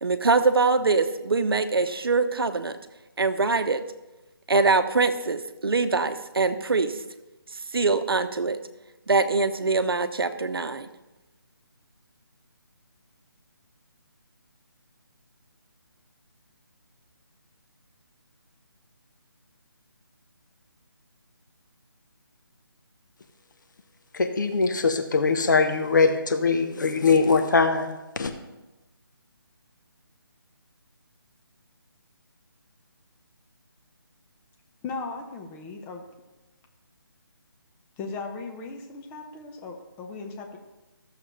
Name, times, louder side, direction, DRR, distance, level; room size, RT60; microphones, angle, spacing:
voice 1, 0.0-2.8 3.2-3.8 4.5-6.9 7.7-8.6 9.1-10.9, right 3 dB, 75° right, 10 dB, 0.9 m, -23 dB
voice 2, 24.1-28.3, left 4 dB, 55° left, 6 dB, 1.0 m, -22 dB
voice 3, 34.8-36.0 38.0-40.6, left 4 dB, 10° left, 2 dB, 0.8 m, -37 dB
14.5 x 6.8 x 3.3 m, 1.0 s
figure-of-eight pair, 155°, 13 cm